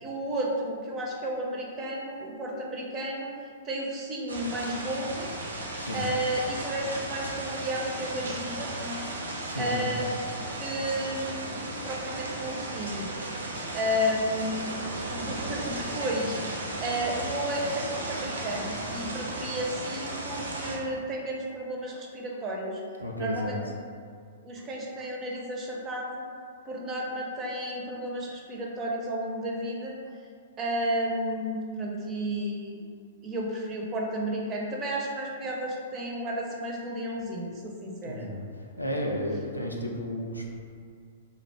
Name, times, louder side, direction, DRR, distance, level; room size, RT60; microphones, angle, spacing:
voice 1, 0.0-3.3 3.6-5.3 5.9-9.0 9.6-13.1 13.7-14.7 15.1-16.4 16.8-22.8 23.2-23.6 24.4-26.2 26.7-30.0 30.6-32.8 33.2-38.3, equal, 25° right, -2 dB, 0.4 m, -32 dB
sound 1, 4.3-20.8, right 2 dB, 80° right, 0.5 m, -35 dB
voice 2, 5.8-6.1 9.5-9.9 23.0-23.6 38.0-38.4 38.8-40.5, equal, 90° left, -1 dB, 0.4 m, -32 dB
2.3 x 2.1 x 3.3 m, 2.2 s
figure-of-eight pair, 110°, 0 cm